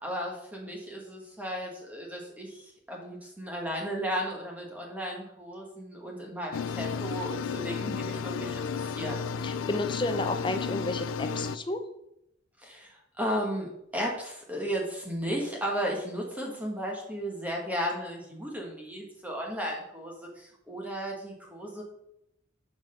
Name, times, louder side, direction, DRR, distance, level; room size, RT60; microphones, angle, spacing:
voice 1, 0.0-9.3 12.6-21.8, equal, 10° right, -1 dB, 1.2 m, -35 dB
sound 1, 6.5-11.6, left 5 dB, 85° left, 0.4 m, -33 dB
voice 2, 9.4-11.8, left 2 dB, 25° left, 8 dB, 0.6 m, -31 dB
6.3 x 5.3 x 5.2 m, 0.79 s
head